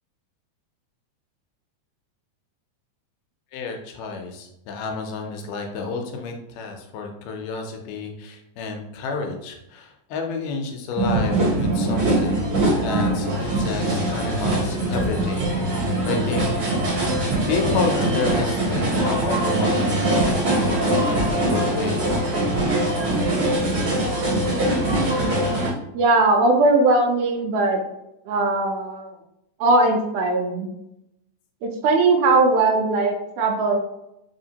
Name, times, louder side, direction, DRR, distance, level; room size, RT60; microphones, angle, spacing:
voice 1, 3.5-12.5 12.8-16.5 17.5-22.1, left 4 dB, 85° left, 3 dB, 2.2 m, -30 dB
sound 1, 10.9-25.7, right 1 dB, 40° right, 1.4 m, -22 dB
voice 2, 25.9-27.8 28.3-29.2 29.6-30.7 31.6-33.8, right 2 dB, 80° right, 3 dB, 1.9 m, -19 dB
5.0 x 2.8 x 2.8 m, 0.85 s
omnidirectional pair, 3.7 m